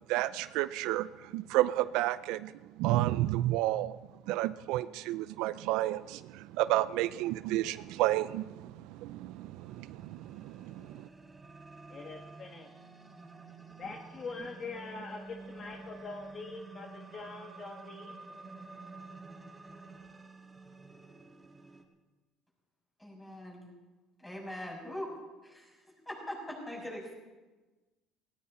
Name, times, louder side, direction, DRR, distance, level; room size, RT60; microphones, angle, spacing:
voice 1, 0.0-4.0 4.3-11.1, right 15 dB, 80° right, 15 dB, 0.5 m, -31 dB
sound 1, 8.7-21.8, right 3 dB, 15° right, 1.9 m, -50 dB
voice 2, 11.9-12.7 13.8-18.1, left 3 dB, 35° left, 3 dB, 1.5 m, -43 dB
voice 3, 23.0-23.7 24.2-25.1 25.4-25.8 26.1-27.1, left 1 dB, 10° left, -1 dB, 6.3 m, -41 dB
18.5 x 18.0 x 4.3 m, 1.2 s
cardioid pair, 120°, 0 cm